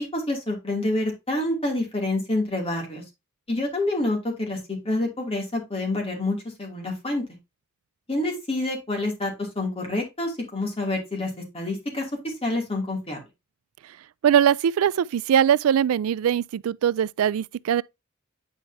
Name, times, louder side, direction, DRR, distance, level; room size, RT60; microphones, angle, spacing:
voice 1, 0.0-3.0 3.5-7.2 8.1-11.3 11.5-12.1 12.4-13.2, left 2 dB, 30° left, 2.7 m, -27 dB
voice 2, 14.2-17.8, right 9 dB, 85° right, 0.3 m, -21 dB
9.5 x 4.7 x 2.8 m
head